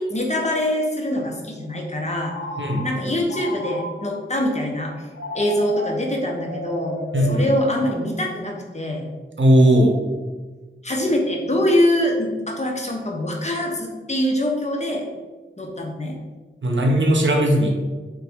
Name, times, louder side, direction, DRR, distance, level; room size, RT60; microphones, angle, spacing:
voice 1, 0.0-2.4 2.8-4.9 5.3-7.0 7.3-9.1 10.8-15.1 15.6-16.2, left 1 dB, 35° left, 0 dB, 0.8 m, -24 dB
Telephone, 2.3-4.3 5.1-8.2, left 1 dB, 90° left, 0.6 m, -34 dB
voice 2, 7.1-7.5 9.4-10.0 16.6-17.7, equal, 65° right, 1 dB, 0.8 m, -17 dB
3.9 x 3.2 x 3.5 m, 1.3 s
wide cardioid pair, 45°, 21 cm